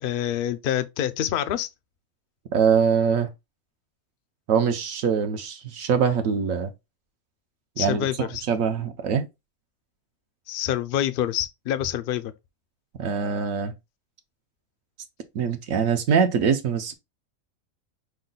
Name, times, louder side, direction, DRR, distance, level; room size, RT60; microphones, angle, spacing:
voice 1, 0.0-1.7 7.8-8.4 10.5-12.3, left 11 dB, 65° left, 0.5 m, -26 dB
voice 2, 2.5-3.3 4.5-6.7 7.8-9.3 13.0-13.7 15.3-16.9, right 6 dB, 75° right, 1.1 m, -23 dB
5.5 x 2.2 x 3.9 m
omnidirectional pair, 1.5 m